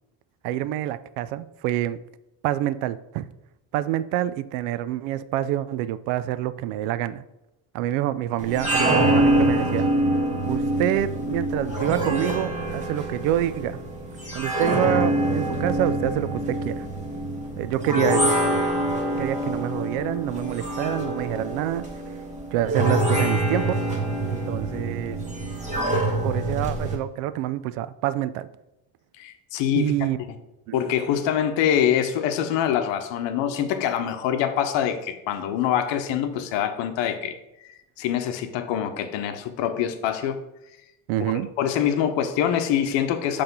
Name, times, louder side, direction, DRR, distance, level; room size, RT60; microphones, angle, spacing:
voice 1, 0.4-2.0 2.4-3.3 3.7-7.2 7.7-9.9 10.5-13.8 14.3-16.9 17.6-18.5 19.2-21.9 22.5-23.8 24.3-25.2 26.2-28.5 29.8-30.2 30.7-30.9 41.1-41.5, right 12 dB, 80° right, 15 dB, 0.5 m, -27 dB
sound 1, 8.4-27.0, right 1 dB, 15° right, 1.6 m, -25 dB
voice 2, 29.2-29.9 30.7-37.3 37.7-40.4 41.6-43.4, left 9 dB, 70° left, 8 dB, 0.9 m, -24 dB
5.8 x 3.4 x 5.4 m, 0.89 s
supercardioid pair, 90°, 47 cm